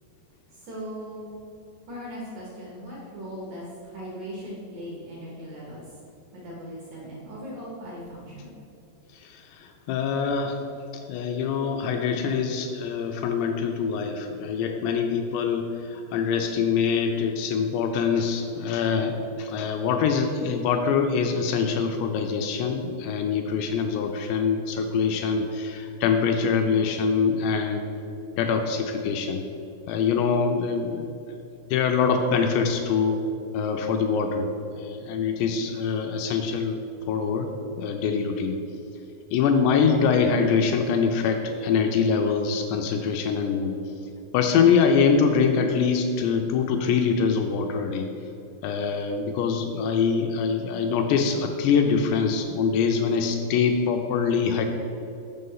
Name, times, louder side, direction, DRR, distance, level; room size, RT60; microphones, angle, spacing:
voice 1, 0.5-1.4 1.8-6.0 6.3-8.5, equal, 65° right, -5 dB, 2.1 m, -39 dB
voice 2, 9.2-10.6 11.1-27.9 28.3-29.4 29.9-31.4 31.7-33.2 33.5-34.5 34.7-36.8 37.1-37.5 37.8-38.6 39.3-43.8 44.3-48.1 48.6-54.7, left 6 dB, 80° left, 4 dB, 2.6 m, -24 dB
6.6 x 6.2 x 5.5 m, 2.7 s
omnidirectional pair, 5.1 m